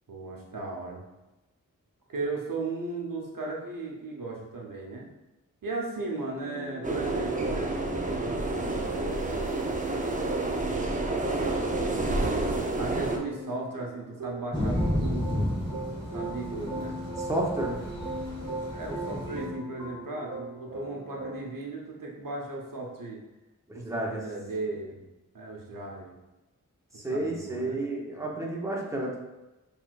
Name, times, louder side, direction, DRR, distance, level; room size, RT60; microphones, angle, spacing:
voice 1, 0.1-1.0 2.1-5.1 5.6-7.8 8.8-9.6 11.5-15.5 16.1-17.0 18.7-23.2 23.7-25.0 25.3-26.1 27.1-27.8, right 3 dB, 90° right, -1 dB, 0.9 m, -36 dB
sound 1, 6.4-21.5, right 2 dB, 65° right, 1.0 m, -40 dB
sound 2, 6.8-13.2, right 2 dB, 25° right, 0.5 m, -29 dB
Thunder / Rain, 14.5-19.5, left 1 dB, 15° left, 1.6 m, -32 dB
voice 2, 17.2-17.8 23.7-24.2 26.9-29.2, right 1 dB, 10° right, -2 dB, 1.0 m, -31 dB
6.3 x 3.4 x 2.4 m, 1.0 s
wide cardioid pair, 75°, 32 cm